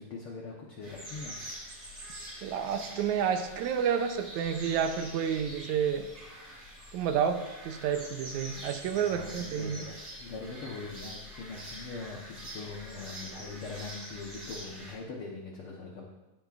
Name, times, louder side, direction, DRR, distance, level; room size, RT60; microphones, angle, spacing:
voice 1, 0.0-1.5 8.9-16.0, left 4 dB, 65° left, -1 dB, 1.4 m, -42 dB
sound 1, 0.8-14.9, equal, 30° right, 4.6 m, -45 dB
voice 2, 2.4-6.1 6.9-9.8, right 7 dB, 75° right, 7 dB, 1.9 m, -30 dB
16.5 x 8.3 x 2.5 m, 1.1 s
omnidirectional pair, 3.8 m